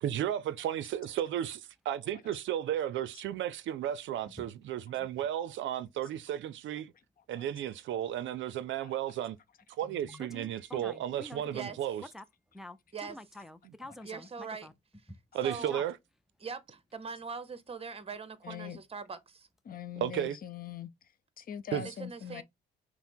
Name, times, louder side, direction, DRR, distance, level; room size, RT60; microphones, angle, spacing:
voice 1, 0.0-6.9 7.3-9.4 9.8-12.0 13.6-13.7 15.3-15.9 20.0-20.4 21.7-21.8, right 11 dB, 70° right, 0.5 m, -34 dB
voice 2, 9.8-11.6 12.1-12.2 12.5-14.7 15.1-15.2 15.7-15.8, left 1 dB, ahead, 0.4 m, -47 dB
voice 3, 14.0-14.7 15.4-15.8 16.4-19.5 21.7-22.4, right 5 dB, 30° right, 0.9 m, -41 dB
voice 4, 18.4-18.8 19.7-20.9 21.4-22.4, left 9 dB, 45° left, 0.6 m, -42 dB
5.7 x 2.1 x 4.4 m
cardioid pair, 90°, 20 cm